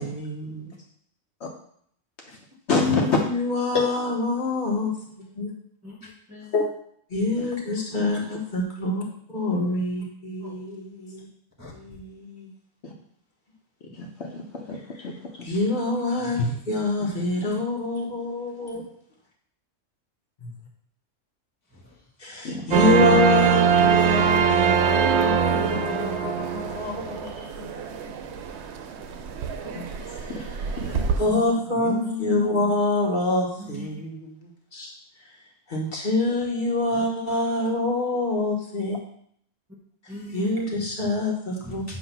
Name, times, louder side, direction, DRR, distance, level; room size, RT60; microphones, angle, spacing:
voice 1, 0.0-0.7 2.7-5.5 7.1-9.0 9.3-11.3 11.7-12.5 15.4-16.4 16.6-18.8 20.4-20.5 22.2-28.1 30.0-30.4 31.2-34.9 35.7-39.0 40.3-42.0, left 2 dB, 40° left, -3 dB, 1.4 m, -26 dB
voice 2, 2.7-3.2 6.5-6.7 8.0-8.3 12.8-12.9 13.9-15.5 16.4-16.5 22.4-22.8 29.7-29.9 30.3-30.4 30.7-31.1, left 3 dB, 60° left, 0 dB, 1.0 m, -27 dB
voice 3, 3.6-3.9 5.8-6.5 9.5-9.8 10.4-10.5 11.6-12.0 16.2-16.6 17.1-17.2 21.7-22.1 25.6-26.2 26.5-26.7 31.7-32.5 33.6-34.0 36.9-37.0 40.1-40.6 41.6-42.0, left 3 dB, 15° right, -4 dB, 0.9 m, -39 dB
sound 1, 22.7-31.2, right 7 dB, 65° right, 0.8 m, -23 dB
7.6 x 2.7 x 5.6 m, 0.66 s
omnidirectional pair, 1.4 m